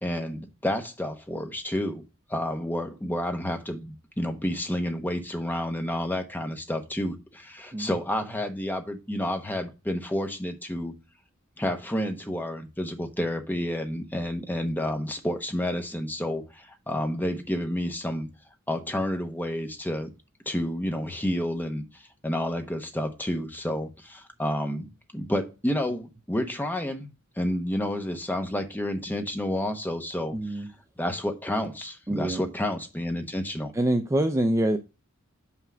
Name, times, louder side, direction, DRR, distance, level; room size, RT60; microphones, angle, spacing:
voice 1, 0.0-2.0 2.3-10.9 11.6-18.3 18.7-20.1 20.5-27.1 27.4-30.6 31.0-33.7, left 1 dB, 10° left, 0.9 m, -30 dB
voice 2, 30.3-30.7 32.1-32.4 33.7-34.8, right 1 dB, 15° right, 0.5 m, -25 dB
5.8 x 4.5 x 6.2 m
head